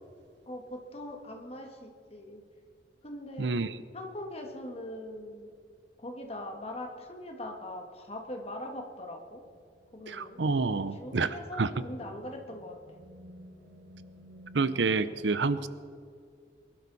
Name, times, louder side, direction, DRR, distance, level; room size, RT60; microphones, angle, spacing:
voice 1, 0.5-2.4 3.0-3.5 3.9-5.5 6.0-9.4 9.9-10.4 10.9-12.8 15.0-15.2, left 1 dB, 35° left, 3 dB, 1.8 m, -41 dB
voice 2, 3.4-3.8 10.1-11.7 14.5-15.7, right 4 dB, 90° right, 15 dB, 0.7 m, -28 dB
sound 1, 8.2-15.0, equal, 70° right, 2.0 m, -54 dB
23.0 x 12.5 x 4.2 m, 2.3 s
head